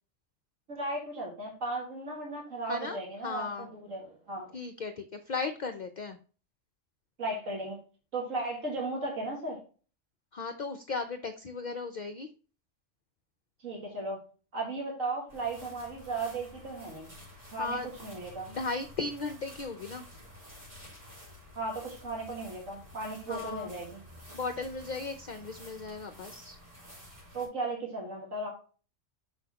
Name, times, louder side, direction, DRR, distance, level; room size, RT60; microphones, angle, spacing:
voice 1, 0.7-4.5 7.2-7.8 8.1-9.6 13.6-14.2 14.5-17.1 17.5-18.5 21.6-24.0 27.3-28.5, right 2 dB, 90° right, -2 dB, 2.3 m, -36 dB
voice 2, 2.7-3.7 4.5-6.2 10.3-12.3 17.5-17.9 18.5-20.1 23.3-23.7 24.3-26.6, left 4 dB, 50° left, 7 dB, 0.5 m, -36 dB
sound 1, 15.3-27.5, left 1 dB, 40° right, 3.7 m, -51 dB
6.9 x 6.2 x 2.9 m, 0.37 s
omnidirectional pair, 1.3 m